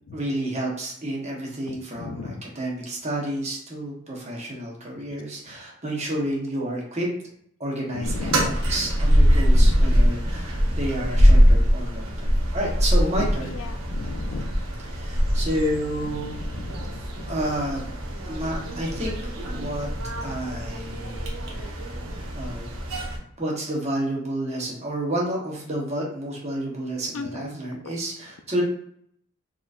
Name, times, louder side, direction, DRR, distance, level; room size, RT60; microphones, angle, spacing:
voice 1, 0.1-7.1 7.6-13.5 14.8-16.3 17.3-17.9 18.3-19.1 19.5-19.9 20.2-21.9 22.4-22.7 23.4-28.6, right 1 dB, 30° right, -3 dB, 1.1 m, -30 dB
voice 2, 1.7-2.4 7.9-8.5 9.5-9.9 13.2-14.5 16.5-17.3 27.1-27.5 27.8-27.9, left 4 dB, 70° left, 8 dB, 0.4 m, -36 dB
sound 1, 8.0-23.2, equal, 80° right, 0.9 m, -22 dB
4.4 x 3.1 x 2.5 m, 0.67 s
head